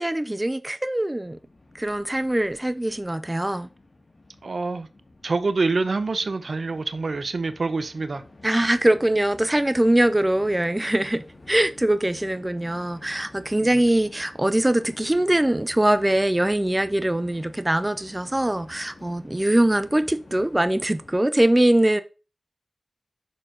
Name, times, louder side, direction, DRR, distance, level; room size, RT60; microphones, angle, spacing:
voice 1, 0.0-1.4 1.7-3.7 8.4-22.0, right 1 dB, 20° right, 0.6 m, -22 dB
Train, 1.2-21.2, left 2 dB, 55° left, 1.9 m, -49 dB
voice 2, 4.4-4.9 5.2-8.2 13.6-13.8, right 3 dB, 70° right, 0.7 m, -26 dB
6.6 x 5.9 x 3.9 m
cardioid pair, 45°, 0 cm